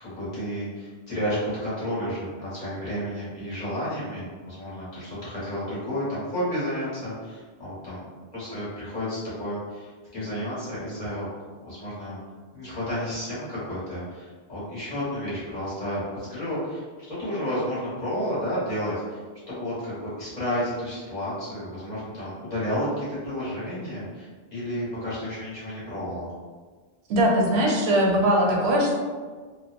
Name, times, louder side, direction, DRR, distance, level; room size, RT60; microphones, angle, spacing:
voice 1, 0.0-8.0 8.3-11.3 11.6-12.2 12.5-19.2 19.5-26.3, equal, 45° left, -10 dB, 1.1 m, -31 dB
voice 2, 27.1-29.0, equal, 85° right, -1 dB, 0.8 m, -21 dB
2.6 x 2.1 x 2.4 m, 1.5 s
omnidirectional pair, 1.1 m